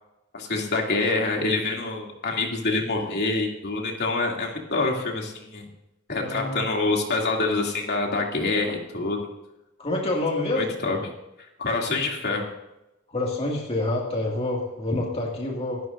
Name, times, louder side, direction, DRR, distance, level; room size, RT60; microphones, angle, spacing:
voice 1, 0.3-5.7 6.1-9.2 10.6-11.1 11.6-12.5, left 3 dB, 55° left, 0 dB, 2.8 m, -26 dB
voice 2, 6.1-6.6 9.8-10.7 13.1-15.8, left 2 dB, 30° left, -2 dB, 2.3 m, -27 dB
25.5 x 12.5 x 2.7 m, 0.93 s
head